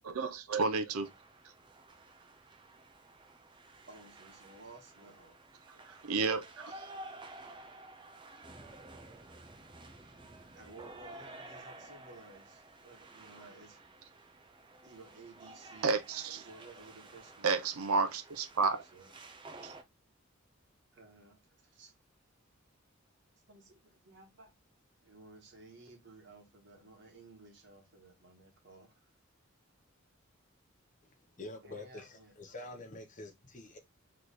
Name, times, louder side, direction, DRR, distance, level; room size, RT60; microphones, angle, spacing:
voice 1, 0.0-1.1 6.0-6.7 15.8-16.4 17.4-18.8 19.6-19.7, right 4 dB, 90° right, 0.7 m, -31 dB
sound 1, 1.0-19.8, right 2 dB, 20° right, 0.6 m, -52 dB
voice 2, 3.9-5.3 10.5-13.8 14.8-16.0 16.4-17.5 18.6-19.1 20.9-21.4 21.7-21.9 23.5-24.5 25.0-29.0 31.6-32.3, right 2 dB, 55° right, 1.3 m, -55 dB
voice 3, 31.4-33.8, left 2 dB, 35° left, 0.8 m, -46 dB
3.3 x 3.1 x 4.0 m
head